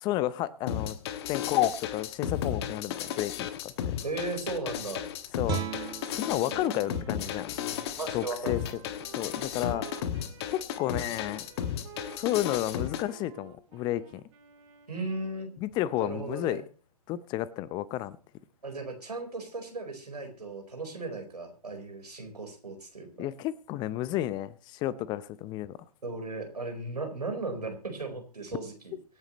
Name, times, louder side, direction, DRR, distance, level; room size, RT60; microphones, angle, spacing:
voice 1, 0.0-1.0 1.3-3.7 5.4-7.5 8.1-8.8 9.1-10.1 10.5-11.5 12.2-14.2 15.6-16.6 17.1-18.2 23.2-25.8, left 14 dB, 20° left, 0.7 m, -31 dB
sound 1, 0.7-13.0, left 9 dB, 40° left, 1.4 m, -34 dB
voice 2, 4.0-5.1 7.6-8.8 14.9-15.5 15.9-16.6 18.6-23.3 26.0-28.7, right 3 dB, 85° right, 4.3 m, -36 dB
Guitar, 5.4-11.0, right 7 dB, 20° right, 1.9 m, -41 dB
Wind instrument woodwind instrument, 6.6-15.6, right 10 dB, 45° right, 3.0 m, -52 dB
24.0 x 9.0 x 3.1 m
figure-of-eight pair, 125°, 20 cm